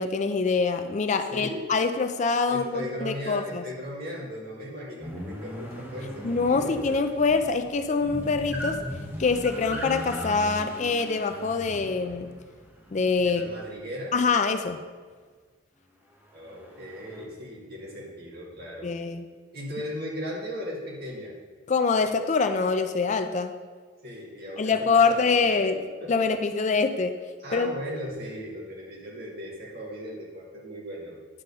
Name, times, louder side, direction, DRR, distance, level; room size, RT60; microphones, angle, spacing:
voice 1, 0.0-3.6 6.2-8.8 9.2-12.3 12.9-13.5 14.1-14.8 18.8-19.3 21.7-23.5 24.6-25.8 26.1-27.1 27.5-27.7, left 4 dB, 35° left, 8 dB, 0.4 m, -25 dB
voice 2, 1.3-1.6 2.5-7.0 13.2-14.1 16.3-18.9 19.5-21.4 24.0-26.3 27.4-31.2, equal, 50° right, -4 dB, 2.4 m, -37 dB
sound 1, 5.0-13.9 16.3-17.2, equal, 10° right, 1.2 m, -38 dB
9.8 x 3.9 x 6.7 m, 1.5 s
head